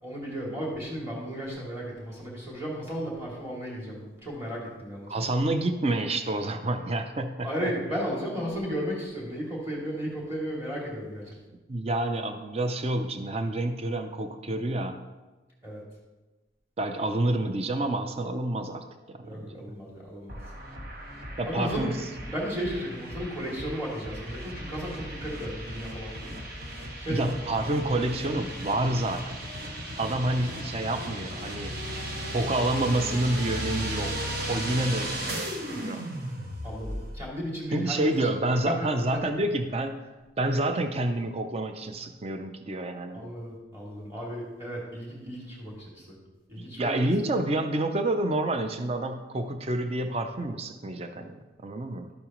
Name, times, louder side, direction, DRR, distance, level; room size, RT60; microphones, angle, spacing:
voice 1, 0.0-5.3 7.4-11.3 15.6-15.8 19.2-20.4 21.5-22.0 22.3-26.4 27.0-27.3 36.6-38.8 43.1-46.1 46.5-47.1, equal, 15° right, -4 dB, 2.5 m, -34 dB
voice 2, 5.1-7.7 11.7-15.0 16.8-19.8 21.4-22.0 27.1-29.4 30.0-31.8 32.3-34.2 34.5-35.2 35.7-36.0 37.7-40.0 40.4-43.3 46.6-52.1, right 1 dB, 35° right, 7 dB, 0.5 m, -28 dB
sound 1, 20.3-37.2, equal, 50° right, 1.4 m, -36 dB
11.5 x 8.7 x 3.0 m, 1.2 s
head